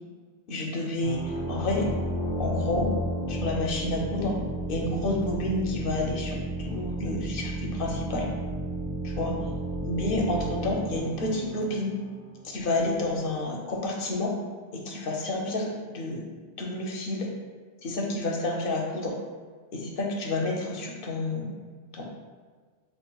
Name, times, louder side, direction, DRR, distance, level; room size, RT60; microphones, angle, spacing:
voice 1, 0.5-1.9 2.4-2.9 3.3-4.4 4.7-8.3 9.0-9.3 9.8-11.9 12.4-14.3 14.7-16.2 16.6-17.3 17.8-19.1 19.7-21.5 21.9-22.0, left 2 dB, 65° left, 0 dB, 0.7 m, -30 dB
sound 1, 1.0-12.5, right 1 dB, 40° left, 0.3 m, -32 dB
4.9 x 2.4 x 2.2 m, 1.5 s
omnidirectional pair, 1.1 m